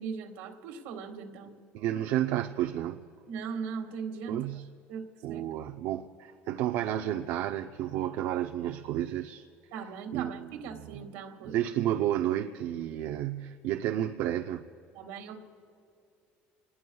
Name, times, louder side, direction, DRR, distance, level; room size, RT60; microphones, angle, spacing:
voice 1, 0.0-1.5 3.3-4.4 4.9-5.4 9.7-11.6 15.0-15.4, right 6 dB, 90° right, 1.9 m, -39 dB
voice 2, 1.7-3.0 4.3-4.7 5.2-9.4 10.1-11.1 11.4-14.6, right 12 dB, 75° right, 0.6 m, -31 dB
28.5 x 20.0 x 2.3 m
cardioid pair, 130°, 4 cm